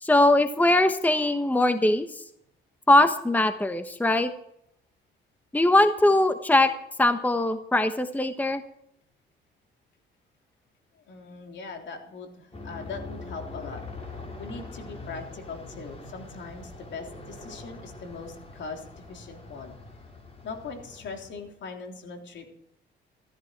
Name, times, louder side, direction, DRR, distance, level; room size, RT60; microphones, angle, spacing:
voice 1, 0.0-2.2 2.9-4.3 5.5-6.7 7.0-8.6, left 1 dB, 10° left, 9 dB, 1.1 m, -21 dB
voice 2, 11.1-13.8 14.1-19.8 20.4-22.5, left 4 dB, 65° left, 3 dB, 3.7 m, -40 dB
Aircraft, 12.5-21.5, left 3 dB, 30° left, 5.0 m, -43 dB
14.5 x 14.0 x 4.7 m, 0.72 s
cardioid pair, 90°, 20 cm